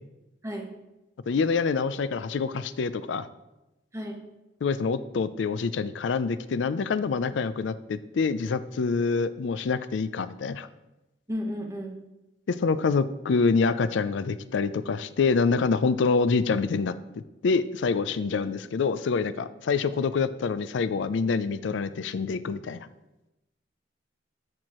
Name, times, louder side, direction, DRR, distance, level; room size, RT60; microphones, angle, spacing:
voice 1, 1.3-3.3 4.6-10.7 12.5-16.9 17.4-22.9, left 4 dB, 70° left, 14 dB, 0.4 m, -26 dB
voice 2, 11.3-11.9, equal, 15° right, 1 dB, 1.0 m, -33 dB
13.5 x 4.5 x 3.0 m, 0.97 s
head